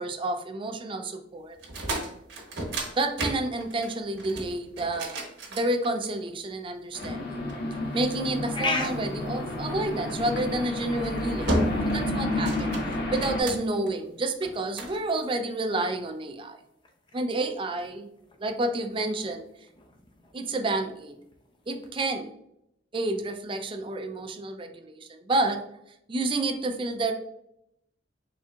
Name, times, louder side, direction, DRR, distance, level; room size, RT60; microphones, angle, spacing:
voice 1, 0.0-1.6 3.0-5.2 5.5-7.4 7.9-11.6 11.9-12.8 13.1-16.6 17.1-18.1 18.4-19.5 20.3-21.2 21.7-22.3 22.9-25.6 26.1-27.1, right 2 dB, 30° right, 5 dB, 0.5 m, -29 dB
sound 1, 1.6-6.3 7.0-8.3 10.1-10.4 10.9-11.1 11.5-12.0 12.3-13.9 14.4-15.0, right 1 dB, 75° right, 1.1 m, -33 dB
sound 2, 6.9-13.4, left 1 dB, 60° left, 0.7 m, -30 dB
sound 3, 7.8-21.9, left 3 dB, 25° left, 0.6 m, -41 dB
4.4 x 3.4 x 2.4 m, 0.77 s
head